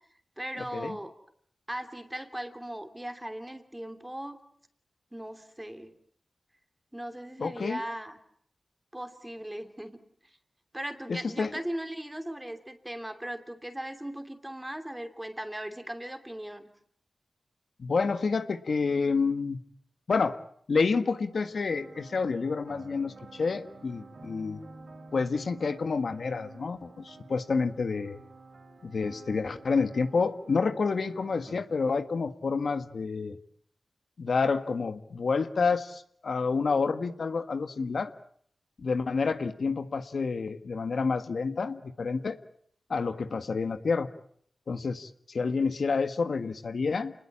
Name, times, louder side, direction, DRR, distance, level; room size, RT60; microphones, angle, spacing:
voice 1, 0.4-1.1 1.7-4.4 5.1-5.9 6.9-8.2 8.9-10.0 10.7-16.7, right 1 dB, 10° right, 7 dB, 2.9 m, -38 dB
voice 2, 7.4-7.8 11.1-11.5 17.8-19.6 20.1-20.4 20.7-24.6 25.1-28.2 28.8-33.4 34.2-38.1 38.8-42.4 42.9-44.1 44.7-47.1, left 4 dB, 70° left, 9 dB, 1.6 m, -29 dB
sound 1, 21.3-31.6, right 3 dB, 55° right, 4.9 m, -50 dB
29.5 x 20.5 x 8.7 m, 0.63 s
wide cardioid pair, 125°, 0 cm